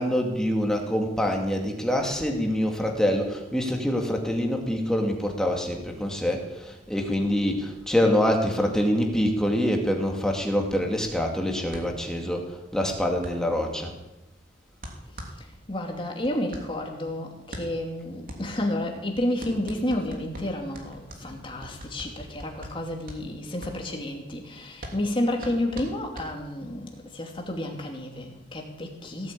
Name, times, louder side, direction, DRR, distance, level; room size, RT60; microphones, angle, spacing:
voice 1, 0.0-13.9, equal, 5° left, 1 dB, 2.3 m, -25 dB
sound 1, 11.7-26.8, equal, 50° right, 3.0 m, -43 dB
voice 2, 15.1-29.3, left 1 dB, 30° left, 2 dB, 2.7 m, -31 dB
17.0 x 9.1 x 8.6 m, 0.96 s
head